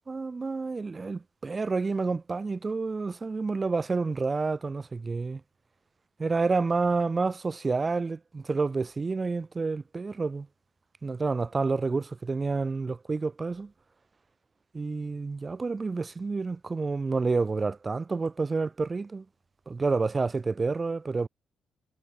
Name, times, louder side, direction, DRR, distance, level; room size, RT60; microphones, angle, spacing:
voice 1, 0.1-5.4 6.2-10.5 11.0-13.7 14.7-19.2 19.7-21.3, right 4 dB, 35° right, 3.4 m, -29 dB
hypercardioid pair, 50°, 0 cm